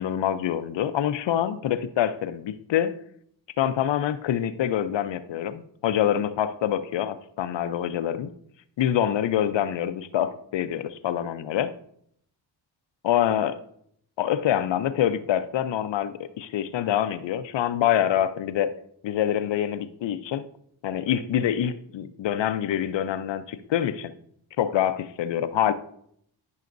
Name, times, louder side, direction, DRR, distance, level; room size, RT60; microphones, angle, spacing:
voice 1, 0.0-2.9 3.6-8.3 8.8-11.7 13.0-13.6 14.2-18.7 19.0-20.4 20.8-24.1 24.6-25.7, left 10 dB, 65° left, 12 dB, 0.7 m, -25 dB
12.5 x 5.6 x 2.6 m, 0.68 s
cardioid pair, 60°, 47 cm